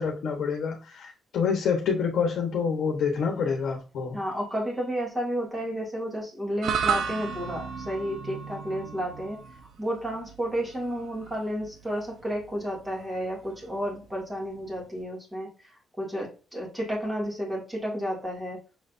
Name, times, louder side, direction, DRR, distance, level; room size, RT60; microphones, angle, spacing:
voice 1, 0.0-4.2, left 6 dB, 65° left, 1 dB, 1.0 m, -27 dB
voice 2, 4.1-9.4 9.8-18.6, equal, 10° right, -3 dB, 1.9 m, -32 dB
sound 1, 6.6-15.0, right 6 dB, 75° right, 0.6 m, -35 dB
6.3 x 3.2 x 2.6 m, 0.34 s
cardioid pair, 160°, 0 cm